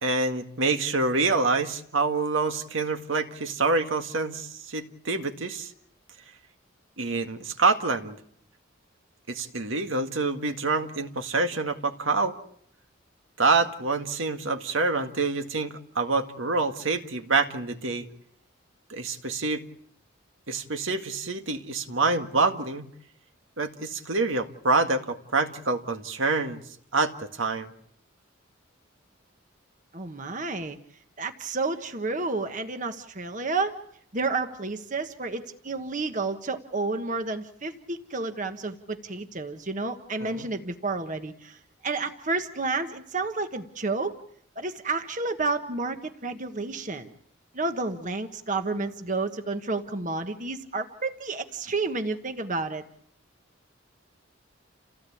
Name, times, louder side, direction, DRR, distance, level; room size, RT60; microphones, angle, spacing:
voice 1, 0.0-5.7 7.0-8.2 9.3-12.4 13.4-18.1 18.9-19.6 20.5-22.9 23.6-26.6 26.9-27.7 40.2-40.5, right 3 dB, 80° right, 6 dB, 1.9 m, -26 dB
voice 2, 29.9-30.8 31.2-33.8 34.1-41.6 41.8-44.2 44.5-47.1 47.5-52.8, right 3 dB, 40° right, 7 dB, 1.4 m, -30 dB
29.5 x 17.0 x 8.6 m, 0.69 s
head